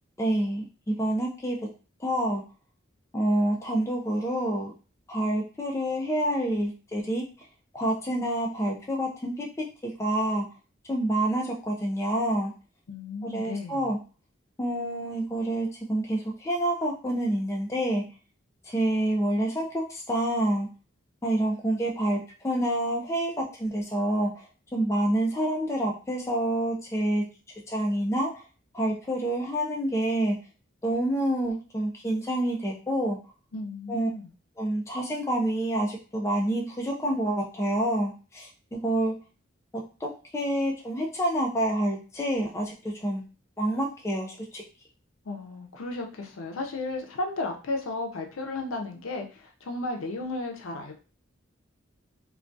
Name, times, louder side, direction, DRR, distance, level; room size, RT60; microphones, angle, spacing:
voice 1, 0.2-1.6 2.0-2.4 3.1-4.7 5.1-7.2 7.7-9.5 10.0-10.4 10.9-12.5 13.2-14.0 14.6-18.0 18.7-20.7 21.2-22.2 22.4-24.5 24.7-27.2 27.7-28.3 28.7-30.4 30.8-33.2 33.9-34.1 34.6-39.1 40.0-43.2 43.6-44.6, right 1 dB, 15° left, -1 dB, 0.3 m, -27 dB
voice 2, 12.9-13.9 33.5-34.3 45.3-50.9, left 2 dB, 85° left, 2 dB, 0.5 m, -34 dB
2.2 x 2.2 x 2.5 m, 0.35 s
head